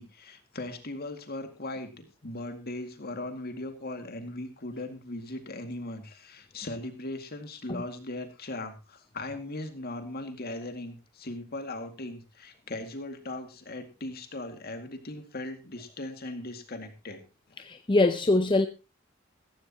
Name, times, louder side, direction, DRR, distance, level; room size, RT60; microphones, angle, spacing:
voice 1, 0.0-17.2, left 2 dB, 50° left, 2.1 m, -38 dB
voice 2, 17.6-18.7, left 2 dB, 25° left, 0.6 m, -23 dB
15.0 x 15.0 x 2.9 m
head